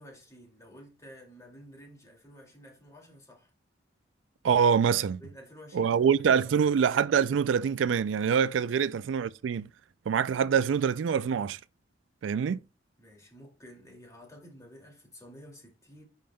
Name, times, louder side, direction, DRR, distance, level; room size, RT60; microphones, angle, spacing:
voice 1, 0.0-3.5 5.2-6.5 8.7-8.9 13.0-16.0, equal, 15° left, 2.4 m, -51 dB
voice 2, 4.4-5.2 5.7-9.7 10.1-11.6 12.2-12.6, right 7 dB, 90° right, 0.3 m, -25 dB
10.5 x 5.1 x 2.2 m
head